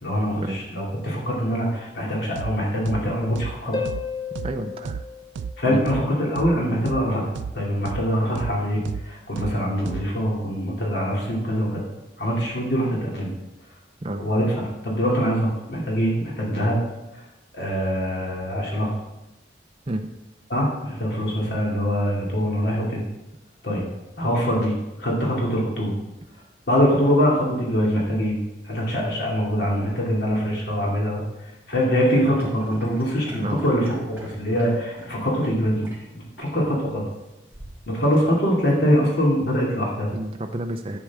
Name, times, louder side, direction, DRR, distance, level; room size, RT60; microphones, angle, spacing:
voice 1, 0.0-3.8 5.6-7.2 7.5-11.8 12.2-13.3 14.2-16.8 17.5-18.9 20.5-23.0 23.6-23.8 24.2-26.0 26.7-28.4 28.6-31.2 31.7-37.0 37.9-40.1, equal, 75° left, -3 dB, 2.6 m, -23 dB
sound 1, 2.4-2.5 2.9-3.0 3.4-3.5 3.9-4.0 4.4-4.5 4.9-5.0 5.4-5.5 5.9-6.0 6.4-6.5 6.9-7.0 7.4-7.5 7.9-8.0 8.4-8.5 8.9-9.0 9.4-9.5 9.9-10.0, right 6 dB, 85° right, 0.3 m, -31 dB
Harp, 3.7-6.2 9.7-9.8, left 5 dB, 25° left, 0.8 m, -33 dB
voice 2, 4.4-5.0 5.7-5.9 14.0-14.3 19.9-20.1 33.3-33.6 40.1-41.0, right 1 dB, 30° right, 3 dB, 0.6 m, -30 dB
sound 2, 32.0-35.6 35.8-36.0 36.4-36.6 37.5-38.6, right 1 dB, 10° right, 2.6 m, -42 dB
11.5 x 8.5 x 3.6 m, 0.97 s
head